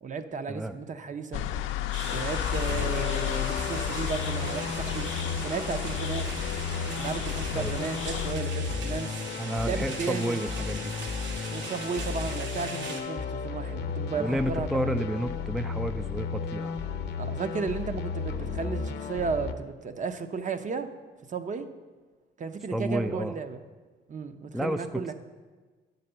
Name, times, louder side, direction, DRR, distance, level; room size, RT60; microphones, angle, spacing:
voice 1, 0.0-1.4 2.1-5.1 5.4-6.5 6.9-9.2 9.6-10.4 11.5-15.0 17.2-20.9 21.3-21.7 22.4-23.6 24.1-25.1, right 5 dB, 40° right, 9 dB, 0.7 m, -34 dB
sound 1, 1.3-8.3, left 12 dB, 85° left, 0.5 m, -33 dB
sound 2, 1.9-13.0, right 3 dB, 70° right, 1.7 m, -40 dB
sound 3, 2.1-19.5, left 5 dB, 60° left, 0.7 m, -34 dB
voice 2, 2.7-3.1 7.5-7.7 9.4-10.9 14.1-16.7 22.7-23.4 24.5-25.1, equal, ahead, 9 dB, 0.3 m, -31 dB
9.6 x 4.1 x 6.8 m, 1.3 s
cardioid pair, 90°, 20 cm